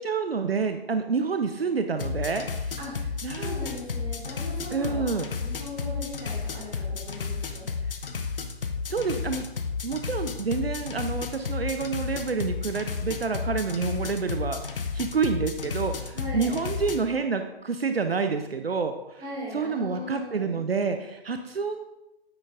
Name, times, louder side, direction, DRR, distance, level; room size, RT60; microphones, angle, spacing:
voice 1, 0.0-2.8 3.2-3.5 4.7-5.3 8.9-9.4 9.8-19.2 19.5-21.8, right 5 dB, 70° right, 7 dB, 0.7 m, -28 dB
sound 1, 2.0-17.0, left 5 dB, 60° left, 0.8 m, -32 dB
voice 2, 2.8-3.1 3.4-7.9 16.1-16.5 19.2-20.6, left 1 dB, 15° right, -4 dB, 2.2 m, -39 dB
9.0 x 8.9 x 2.5 m, 0.93 s
figure-of-eight pair, 130°, 31 cm